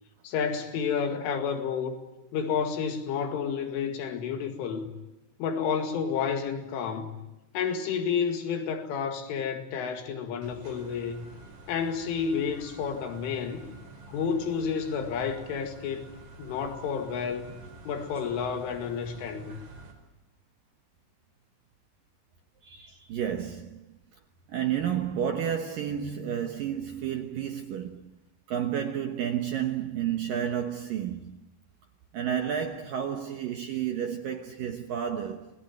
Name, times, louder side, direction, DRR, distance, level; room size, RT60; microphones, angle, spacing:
voice 1, 0.2-2.0 2.3-4.9 5.4-7.2 7.5-11.3 11.7-13.6 14.1-16.1 16.4-17.5 17.9-19.6, left 6 dB, 85° left, 4.6 m, -30 dB
sound 1, 10.4-19.9, right 3 dB, 40° right, 6.0 m, -48 dB
voice 2, 22.6-23.9 24.5-28.0 28.5-31.4 32.1-35.5, right 9 dB, 70° right, 2.2 m, -31 dB
29.0 x 21.0 x 9.3 m
omnidirectional pair, 5.5 m